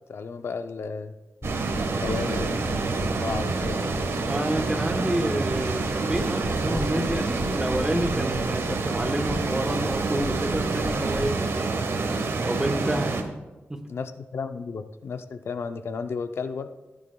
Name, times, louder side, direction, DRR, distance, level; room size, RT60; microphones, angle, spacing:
voice 1, 0.1-1.1 1.9-3.9 13.9-16.7, left 5 dB, 65° left, 8 dB, 0.6 m, -33 dB
sound 1, 1.4-11.2, left 2 dB, 10° left, 2.9 m, -36 dB
sound 2, 1.4-13.2, right 3 dB, 80° right, 1.3 m, -27 dB
voice 2, 4.2-11.9 12.4-13.3 13.7-13.8, right 1 dB, 15° right, 5 dB, 1.1 m, -29 dB
16.0 x 10.5 x 2.3 m, 1.1 s
wide cardioid pair, 120°, 4 cm